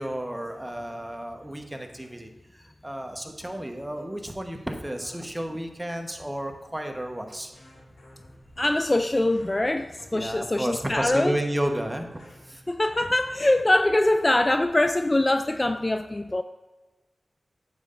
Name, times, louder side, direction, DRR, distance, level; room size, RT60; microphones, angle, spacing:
voice 1, 0.0-7.5 10.1-12.1 12.5-12.6, right 1 dB, 15° right, 4 dB, 1.1 m, -32 dB
sound 1, 7.5-14.6, left 1 dB, 85° left, 2.0 m, -53 dB
voice 2, 8.6-11.4 12.7-16.4, left 1 dB, 30° left, 9 dB, 0.3 m, -23 dB
9.3 x 7.5 x 2.5 m, 1.2 s
cardioid pair, 45°, 0 cm